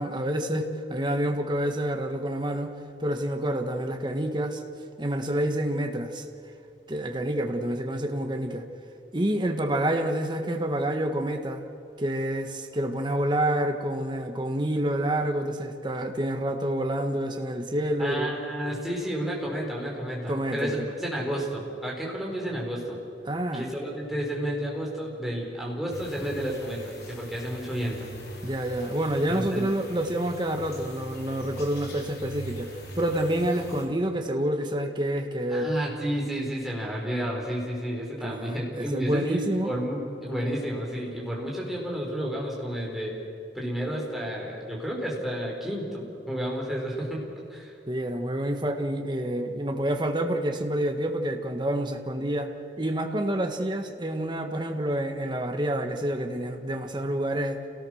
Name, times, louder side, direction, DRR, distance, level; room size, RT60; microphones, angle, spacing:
voice 1, 0.0-2.7 3.0-4.6 5.0-6.2 6.9-8.6 9.1-11.6 12.0-18.3 20.3-20.9 23.2-23.7 28.4-32.7 33.0-35.7 38.2-39.7 47.9-57.6, right 1 dB, 25° right, 5 dB, 1.5 m, -28 dB
voice 2, 18.0-23.0 23.5-28.1 29.3-29.7 35.5-43.2 43.5-47.2 47.5-47.7, equal, ahead, -3 dB, 4.6 m, -31 dB
sound 1, 25.9-33.8, equal, 60° left, 3.7 m, -42 dB
28.5 x 18.0 x 6.5 m, 2.5 s
head